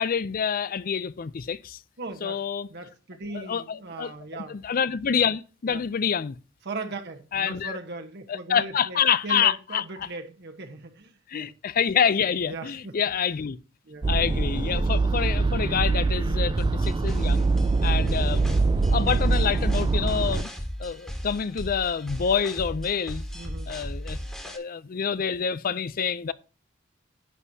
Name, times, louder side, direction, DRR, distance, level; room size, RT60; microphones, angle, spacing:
voice 1, 0.0-1.8 2.2-2.7 3.3-6.4 7.3-7.8 8.3-10.1 11.3-13.6 14.1-17.5 17.8-20.5 20.8-23.3 23.7-24.2 24.4-26.3, left 7 dB, 45° left, 0.5 m, -27 dB
voice 2, 2.0-2.4 2.7-4.6 5.7-5.8 6.6-11.5 12.5-12.9 13.8-14.1 16.3-16.6 23.3-23.8, right 3 dB, 60° right, 1.2 m, -38 dB
sound 1, 14.0-20.4, right 3 dB, 25° right, 0.3 m, -23 dB
sound 2, 16.6-24.6, equal, 5° left, 1.6 m, -36 dB
11.0 x 8.2 x 2.8 m
head